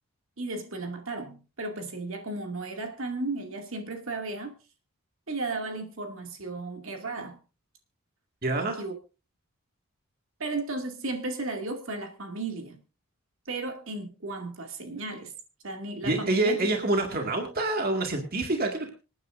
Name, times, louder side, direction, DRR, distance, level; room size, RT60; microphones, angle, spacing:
voice 1, 0.4-4.5 5.3-7.4 8.6-8.9 10.4-12.8 13.5-15.3 15.6-16.6, right 2 dB, 65° right, 4 dB, 2.4 m, -34 dB
voice 2, 8.4-8.8 16.0-18.9, right 2 dB, 45° right, 3 dB, 2.0 m, -26 dB
26.5 x 9.6 x 2.6 m, 0.31 s
head